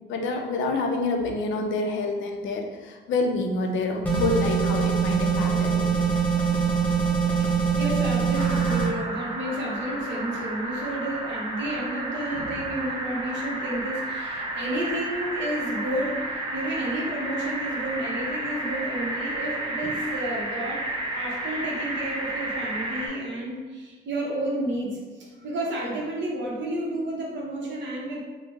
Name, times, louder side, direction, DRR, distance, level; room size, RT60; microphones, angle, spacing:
voice 1, 0.1-6.0 12.3-12.5, left 3 dB, 75° left, 3 dB, 0.5 m, -27 dB
sound 1, 4.0-8.9, right 6 dB, 10° left, 0.9 m, -23 dB
voice 2, 7.4-20.8 21.1-28.2, right 1 dB, 70° right, -2 dB, 0.8 m, -31 dB
sound 2, 8.3-23.1, right 1 dB, 25° right, 0.8 m, -32 dB
3.2 x 2.0 x 3.2 m, 1.4 s
cardioid pair, 90°, 20 cm